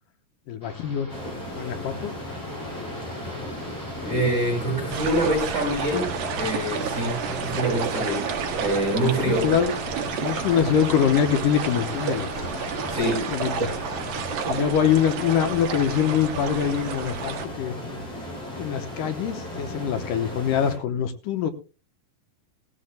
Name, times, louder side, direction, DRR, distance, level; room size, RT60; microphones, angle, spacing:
voice 1, 0.5-1.1 1.4-2.2 9.3-9.8 10.2-12.3 13.3-13.8 14.4-17.8 18.6-21.5, left 8 dB, 75° left, 7 dB, 2.4 m, -24 dB
sound 1, 0.6-13.0, equal, 5° left, 5.1 m, -42 dB
sound 2, 1.1-20.8, left 1 dB, 40° left, 7.0 m, -36 dB
voice 2, 4.0-6.1 6.4-8.2 8.6-9.5 12.9-13.3, right 1 dB, 30° right, -2 dB, 6.3 m, -25 dB
sound 3, 4.9-17.5, right 6 dB, 85° right, 3.3 m, -31 dB
18.5 x 15.5 x 2.2 m, 0.32 s
omnidirectional pair, 4.1 m